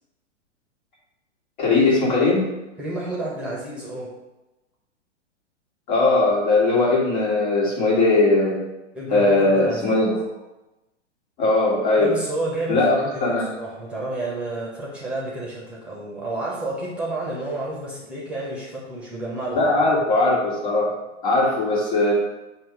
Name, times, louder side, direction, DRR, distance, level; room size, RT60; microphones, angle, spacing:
voice 1, 1.6-2.5 5.9-8.6 9.1-10.2 11.4-12.1 12.7-13.5 19.5-20.9 21.2-22.1, left 2 dB, 40° left, -4 dB, 2.3 m, -19 dB
voice 2, 2.8-4.1 8.9-10.1 11.9-19.8, right 2 dB, 5° right, -6 dB, 1.3 m, -30 dB
7.5 x 2.8 x 5.1 m, 1.0 s
figure-of-eight pair, 110°, 37 cm